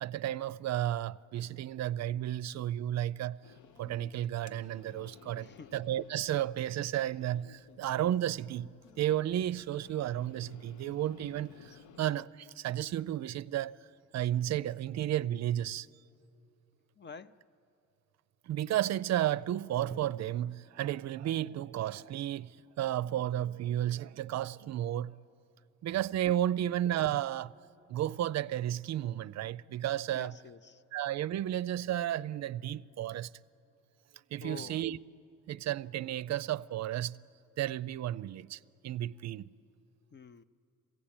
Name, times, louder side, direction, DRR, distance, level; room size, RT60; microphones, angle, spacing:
voice 1, 0.0-3.4 3.8-8.7 9.0-13.8 14.1-15.9 18.5-25.1 25.8-27.5 27.9-30.3 30.9-33.3 34.3-35.0 35.5-37.2 37.6-39.4, right 12 dB, 60° right, 0.5 m, -33 dB
sound 1, 3.4-12.3, left 8 dB, 80° left, 0.8 m, -57 dB
voice 2, 5.4-5.8 17.0-17.4 25.8-26.0 26.7-26.8 30.1-30.8 34.4-34.9 40.1-40.4, left 6 dB, 35° left, 0.6 m, -49 dB
Drum, 19.9-23.9, right 4 dB, 15° right, 0.9 m, -54 dB
21.5 x 16.5 x 8.8 m
cardioid pair, 90°, 30 cm